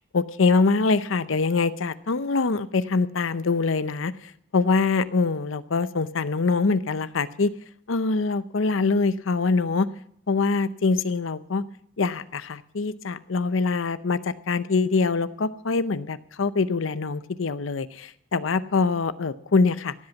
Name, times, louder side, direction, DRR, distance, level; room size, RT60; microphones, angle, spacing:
voice 1, 0.1-7.5 7.9-9.9 10.3-11.6 12.0-19.9, left 4 dB, 85° left, 15 dB, 0.7 m, -24 dB
16.5 x 8.0 x 7.1 m, 0.69 s
head